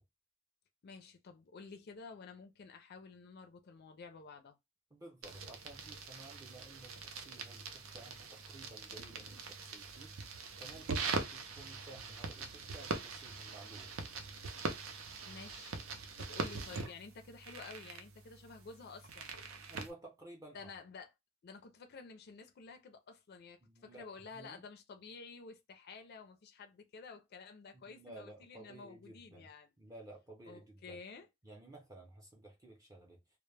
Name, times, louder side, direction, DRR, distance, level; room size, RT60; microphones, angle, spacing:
voice 1, 0.8-4.6 15.2-15.8 16.2-19.3 20.5-21.1 21.4-29.7 30.5-31.3, left 4 dB, 55° left, 0.4 m, -51 dB
voice 2, 4.9-10.1 10.6-13.9 16.4-16.5 19.7-20.7 23.6-24.6 27.7-29.5 29.8-31.0 31.4-33.4, right 2 dB, 15° right, 0.5 m, -54 dB
sound 1, 5.2-19.9, right 4 dB, 90° right, 0.5 m, -43 dB
2.1 x 2.1 x 3.2 m
head